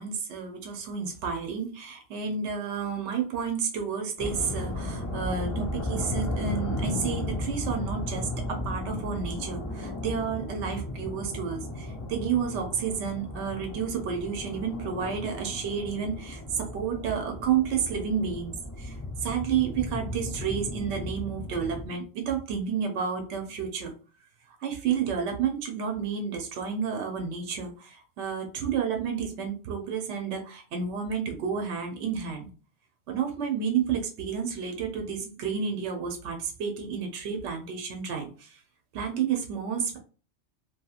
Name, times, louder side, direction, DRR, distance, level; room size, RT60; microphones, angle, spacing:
voice 1, 0.0-23.9 24.6-32.5 33.1-38.6 38.9-40.0, right 7 dB, 75° right, 3 dB, 0.9 m, -31 dB
sound 1, 4.2-21.9, left 1 dB, 30° left, 0.3 m, -35 dB
2.8 x 2.7 x 2.4 m, 0.37 s
omnidirectional pair, 1.2 m